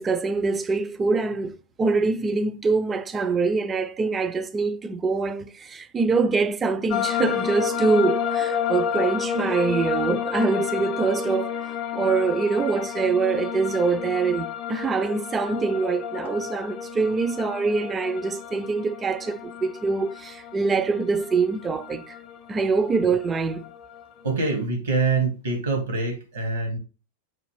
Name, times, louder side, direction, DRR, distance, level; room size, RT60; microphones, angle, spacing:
voice 1, 0.0-11.5 11.9-22.2 22.5-23.7, right 4 dB, 20° right, 0.4 m, -24 dB
sound 1, 6.9-24.6, left 9 dB, 30° left, 0.6 m, -31 dB
voice 2, 24.2-26.8, right 4 dB, 70° right, 1.1 m, -25 dB
6.0 x 2.5 x 3.2 m
figure-of-eight pair, 90°, 0 cm